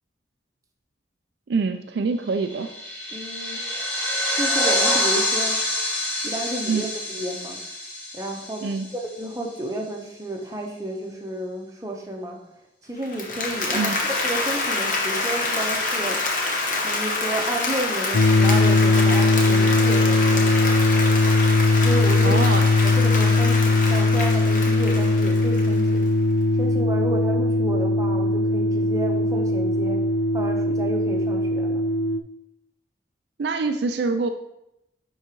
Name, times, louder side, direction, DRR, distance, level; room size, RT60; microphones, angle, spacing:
voice 1, 1.5-2.7 6.6-6.9 8.6-8.9 13.7-14.0 22.2-22.7 33.4-34.3, right 4 dB, 60° right, 7 dB, 0.4 m, -25 dB
sound 1, 2.4-9.2, left 1 dB, 10° left, 1.7 m, -26 dB
voice 2, 3.1-3.6 4.4-5.6 6.2-7.6 8.1-8.7 8.9-12.4 12.8-16.2 16.8-20.8 21.8-22.4 22.8-26.1 26.6-30.0 30.3-31.8, right 1 dB, 20° right, 0 dB, 0.8 m, -31 dB
Applause, 13.0-26.0, left 2 dB, 45° left, 1.1 m, -27 dB
sound 2, 18.1-32.2, left 2 dB, 75° left, 0.4 m, -20 dB
9.9 x 3.8 x 3.0 m, 0.82 s
head